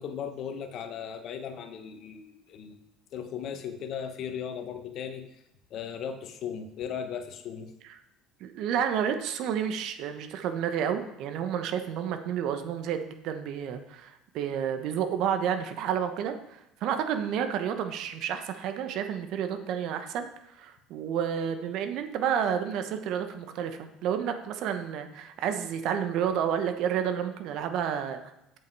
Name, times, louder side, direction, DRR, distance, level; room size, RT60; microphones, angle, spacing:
voice 1, 0.0-2.8 3.1-5.3 5.7-7.7, left 7 dB, 55° left, 7 dB, 1.2 m, -37 dB
voice 2, 8.4-20.3 20.6-28.2, right 8 dB, 65° right, 8 dB, 1.1 m, -30 dB
7.9 x 7.3 x 4.8 m, 0.89 s
hypercardioid pair, 75°, 0 cm